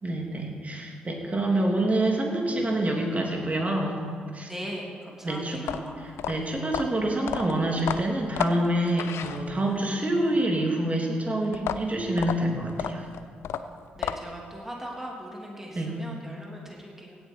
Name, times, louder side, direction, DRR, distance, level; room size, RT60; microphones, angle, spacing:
voice 1, 0.0-4.0 4.3-4.5 5.2-13.0 15.7-15.9, right 1 dB, 30° right, 1 dB, 2.8 m, -27 dB
voice 2, 4.5-6.0 13.9-17.2, equal, 10° right, -1 dB, 2.9 m, -39 dB
sound 1, 5.6-9.9 11.5-14.5, left 8 dB, 65° left, 0.5 m, -32 dB
16.5 x 9.3 x 4.6 m, 2.1 s
hypercardioid pair, 40°, 5 cm